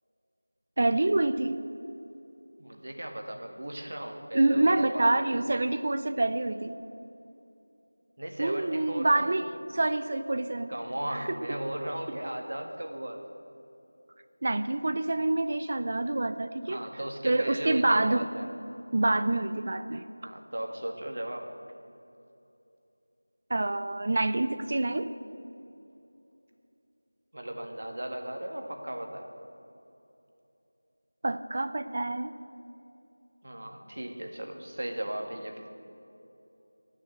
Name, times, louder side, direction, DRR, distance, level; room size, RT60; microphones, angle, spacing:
voice 1, 0.8-1.6 4.3-6.8 8.4-9.4 9.7-10.7 14.4-16.8 17.2-18.3 18.9-20.0 23.5-25.1 31.2-32.3, right 2 dB, 30° right, 10 dB, 0.4 m, -26 dB
voice 2, 2.6-5.3 8.2-9.4 10.7-13.2 16.7-18.5 20.2-21.5 27.3-29.3 33.4-35.6, right 1 dB, 60° right, 3 dB, 1.9 m, -36 dB
18.5 x 6.5 x 9.0 m, 2.8 s
figure-of-eight pair, 175°, 0 cm